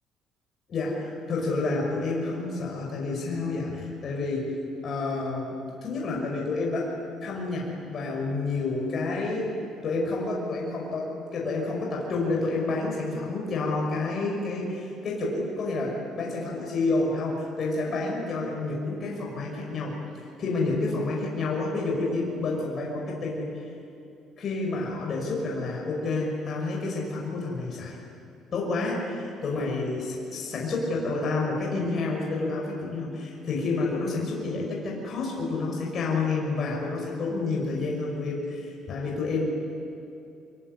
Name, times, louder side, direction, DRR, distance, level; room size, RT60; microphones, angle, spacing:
voice 1, 0.7-4.5 4.8-6.9 7.2-9.6 9.8-19.9 20.4-23.5 24.4-28.0 28.5-39.5, left 3 dB, 35° left, -2 dB, 5.8 m, -29 dB
25.0 x 22.5 x 9.8 m, 2.6 s
cardioid pair, 165°, 0 cm